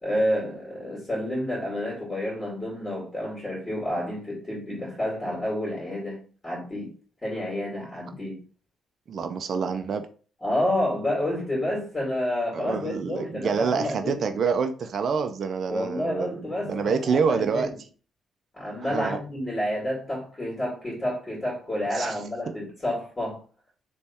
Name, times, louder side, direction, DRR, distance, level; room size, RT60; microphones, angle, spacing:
voice 1, 0.0-6.2 6.4-6.9 7.2-8.4 10.4-14.3 15.7-17.7 18.5-23.4, left 1 dB, 25° left, 2.4 m, -29 dB
voice 2, 9.1-10.1 12.5-17.7 18.8-19.2 21.9-22.2, right 5 dB, 55° right, 0.5 m, -27 dB
3.4 x 3.1 x 4.3 m
cardioid pair, 90°, 0 cm